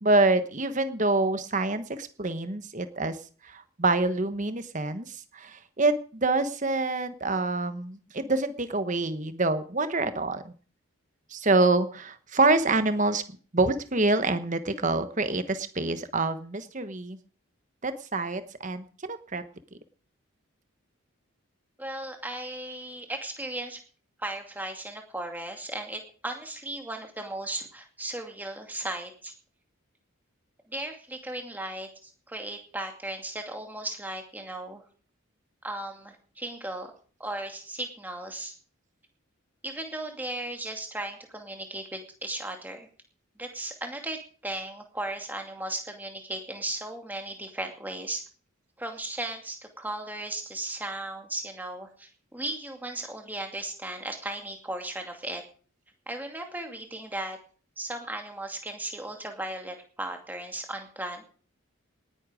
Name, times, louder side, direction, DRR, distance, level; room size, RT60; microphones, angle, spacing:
voice 1, 0.0-3.2 3.4-10.5 11.3-13.2 13.5-17.2 17.8-19.4, right 2 dB, 35° right, 10 dB, 1.2 m, -26 dB
voice 2, 21.8-23.8 24.2-29.3 30.7-34.8 35.6-36.9 37.2-38.5 39.6-42.9 43.4-48.2 48.8-55.4 56.1-57.4 57.8-61.2, right 1 dB, 10° right, 3 dB, 2.3 m, -36 dB
19.0 x 10.0 x 5.1 m, 0.42 s
head